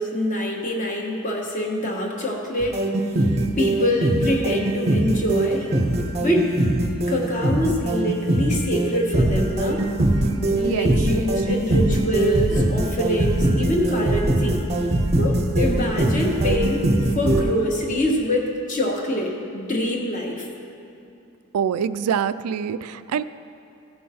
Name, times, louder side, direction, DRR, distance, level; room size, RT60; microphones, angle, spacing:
voice 1, 0.0-2.8 3.6-5.7 6.2-6.5 7.1-9.8 10.4-14.6 15.2-20.5, left 1 dB, 35° left, 0 dB, 1.2 m, -25 dB
sound 1, 2.6-17.4, right 1 dB, 30° right, 0.6 m, -22 dB
voice 2, 21.5-23.2, right 7 dB, 90° right, 13 dB, 0.3 m, -25 dB
15.5 x 5.5 x 4.2 m, 2.7 s
head